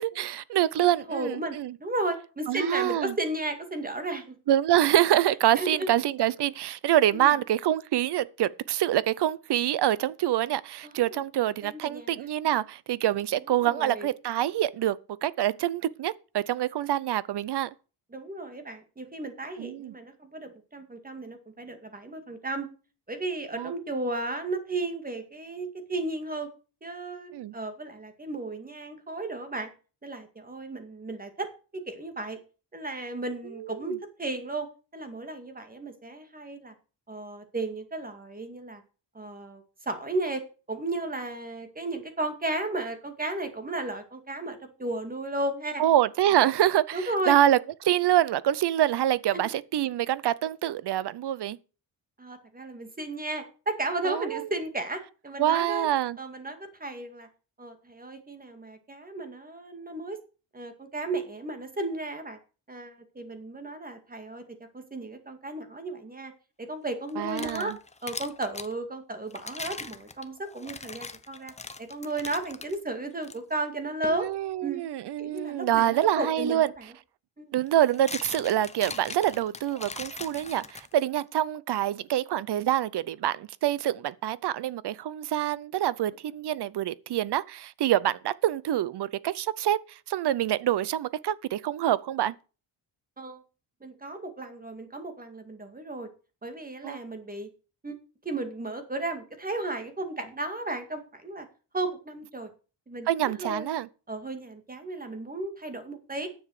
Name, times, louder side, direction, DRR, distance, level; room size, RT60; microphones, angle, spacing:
voice 1, 0.0-1.7 2.5-3.1 4.5-17.7 19.6-19.9 23.6-23.7 27.3-27.5 33.8-34.0 45.8-51.6 54.0-54.5 55.4-56.2 67.2-67.8 74.1-76.7 77.5-92.3 96.8-97.0 103.1-103.9, right 12 dB, 60° right, 0.7 m, -26 dB
voice 2, 1.1-4.4 5.6-5.9 7.1-7.3 10.8-11.2 11.6-12.3 13.6-14.1 18.1-22.7 23.1-26.5 26.8-29.7 30.0-31.5 31.7-32.4 32.7-34.7 34.9-36.7 37.1-38.8 39.1-40.4 40.7-45.8 46.9-47.4 49.3-49.5 52.2-55.9 56.2-57.3 57.6-60.2 60.5-62.4 62.7-64.4 64.7-66.3 66.6-67.7 68.0-71.5 71.8-74.3 74.6-74.8 75.2-76.7 77.4-77.5 93.2-93.4 93.8-96.1 96.4-97.5 97.8-98.0 98.2-101.5 101.7-102.5 102.9-103.7 104.1-106.3, right 2 dB, 20° right, 2.2 m, -34 dB
sound 1, 67.1-68.7 69.3-72.8 73.2-73.4 74.0-74.3 76.4-76.5 77.7-81.2, left 3 dB, 15° left, 0.8 m, -40 dB
9.9 x 7.2 x 6.5 m
cardioid pair, 135°, 47 cm